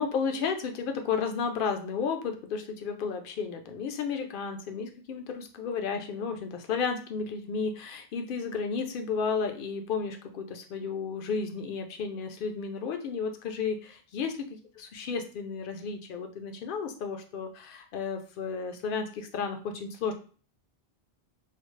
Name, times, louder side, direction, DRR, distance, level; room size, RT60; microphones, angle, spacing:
voice 1, 0.0-14.3 14.8-20.1, left 5 dB, 65° left, 5 dB, 0.7 m, -33 dB
3.2 x 2.0 x 3.1 m, 0.39 s
omnidirectional pair, 1.0 m